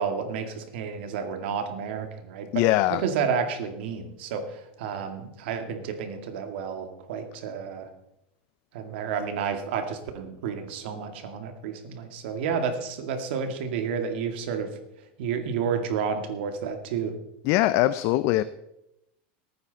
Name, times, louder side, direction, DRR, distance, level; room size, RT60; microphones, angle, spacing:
voice 1, 0.0-2.7 2.9-7.9 8.7-14.7 15.2-17.1, right 6 dB, 75° right, 2.2 m, -30 dB
voice 2, 2.5-3.0 17.4-18.4, left 15 dB, 50° left, 0.5 m, -22 dB
18.5 x 9.4 x 4.1 m
supercardioid pair, 145°, 6 cm